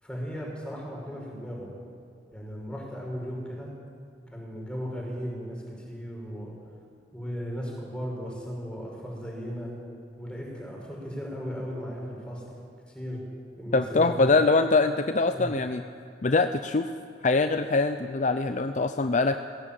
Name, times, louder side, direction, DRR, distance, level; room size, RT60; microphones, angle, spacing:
voice 1, 0.0-1.7 2.3-3.7 4.3-6.5 7.1-9.7 10.1-12.6 12.9-13.2 13.6-14.4 15.3-15.5, equal, 5° left, -3 dB, 5.8 m, -36 dB
voice 2, 13.7-15.8 16.2-16.9 17.2-19.4, left 3 dB, 45° left, 9 dB, 0.6 m, -23 dB
20.0 x 16.5 x 8.9 m, 2.4 s
head